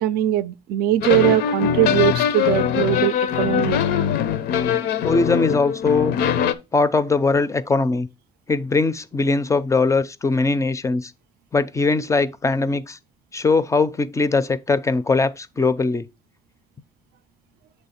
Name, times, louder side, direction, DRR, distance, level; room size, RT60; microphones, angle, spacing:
voice 1, 0.0-3.8, right 13 dB, 70° right, 0.4 m, -21 dB
sound 1, 1.0-6.5, left 8 dB, 75° left, 0.5 m, -22 dB
voice 2, 5.0-6.1 6.7-8.1 8.5-11.1 11.5-13.0 13.3-16.1, left 3 dB, 20° left, 0.4 m, -20 dB
7.0 x 3.2 x 4.2 m
cardioid pair, 110°, 17 cm